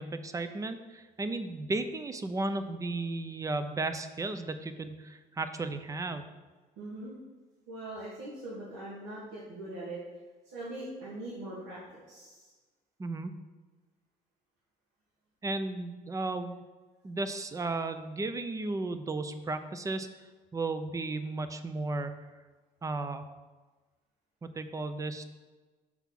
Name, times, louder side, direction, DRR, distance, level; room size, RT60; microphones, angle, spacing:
voice 1, 0.0-6.2 13.0-13.3 15.4-16.6 17.0-20.3 20.5-22.1 22.8-23.2 24.4-25.2, right 2 dB, 20° right, 10 dB, 0.5 m, -34 dB
voice 2, 6.8-7.2 7.7-10.0 10.4-12.5, right 1 dB, 85° right, -7 dB, 1.5 m, -41 dB
6.0 x 3.6 x 5.9 m, 1.3 s
cardioid pair, 110°, 17 cm